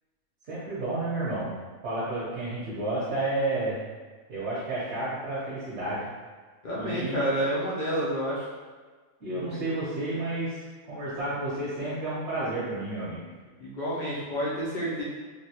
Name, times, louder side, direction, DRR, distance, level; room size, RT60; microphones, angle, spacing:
voice 1, 0.5-1.5 1.8-3.8 4.3-6.0 6.7-7.2 9.2-13.2, right 2 dB, 55° right, -9 dB, 1.0 m, -31 dB
voice 2, 6.6-8.5 9.3-9.8 13.6-15.0, equal, 65° left, -7 dB, 0.4 m, -29 dB
3.3 x 2.2 x 2.8 m, 1.4 s
omnidirectional pair, 1.5 m